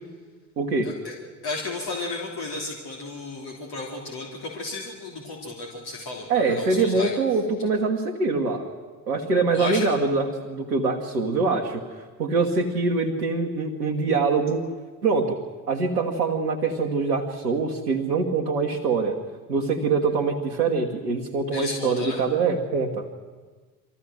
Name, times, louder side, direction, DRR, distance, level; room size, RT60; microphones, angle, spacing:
voice 1, 0.6-0.9 6.3-8.7 9.1-11.8 12.2-14.7 15.0-15.4 15.7-19.2 19.5-23.2, right 4 dB, 90° right, 0 dB, 1.3 m, -24 dB
voice 2, 1.4-7.1 9.5-9.9 21.5-22.2, left 3 dB, 55° left, -2 dB, 3.3 m, -33 dB
23.5 x 14.5 x 7.7 m, 1.4 s
hypercardioid pair, 50°, 46 cm